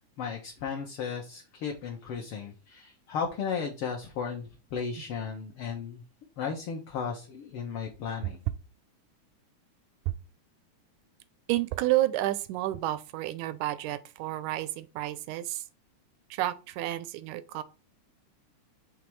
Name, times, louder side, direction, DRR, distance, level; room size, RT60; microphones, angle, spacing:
voice 1, 0.2-6.0 6.4-8.4, left 6 dB, 65° left, 1.4 m, -35 dB
voice 2, 11.5-15.6 16.3-17.6, right 15 dB, 90° right, 2.1 m, -30 dB
6.1 x 3.5 x 4.6 m
omnidirectional pair, 3.4 m